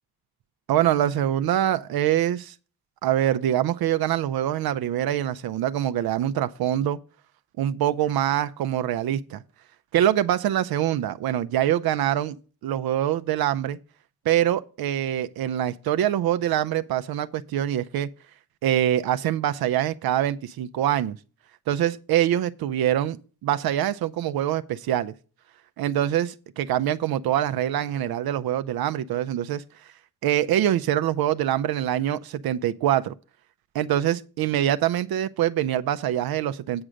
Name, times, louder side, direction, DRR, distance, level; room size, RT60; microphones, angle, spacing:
voice 1, 0.7-2.5 3.0-7.0 7.6-9.4 9.9-12.4 12.6-13.8 14.3-18.1 18.6-21.2 21.7-25.1 25.8-29.6 30.2-33.1 33.7-36.8, right 11 dB, 70° right, 0.5 m, -24 dB
8.8 x 4.9 x 6.4 m
cardioid pair, 85°, 37 cm